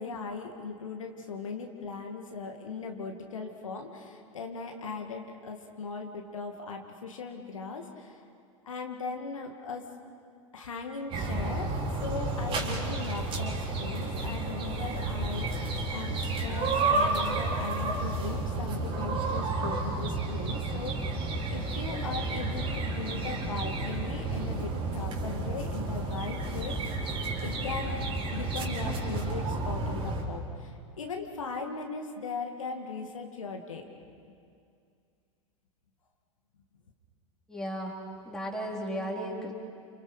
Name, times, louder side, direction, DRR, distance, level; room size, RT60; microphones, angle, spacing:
voice 1, 0.0-8.2 8.6-9.8 10.5-11.8 12.0-21.2 21.5-27.0 27.4-33.9, left 4 dB, 70° left, 3 dB, 2.3 m, -38 dB
sound 1, 11.1-30.2, right 3 dB, 30° right, 4.3 m, -31 dB
voice 2, 37.5-38.0 38.2-39.5, equal, 5° left, -2 dB, 4.3 m, -34 dB
30.0 x 29.0 x 5.1 m, 2.3 s
figure-of-eight pair, 90°, 17 cm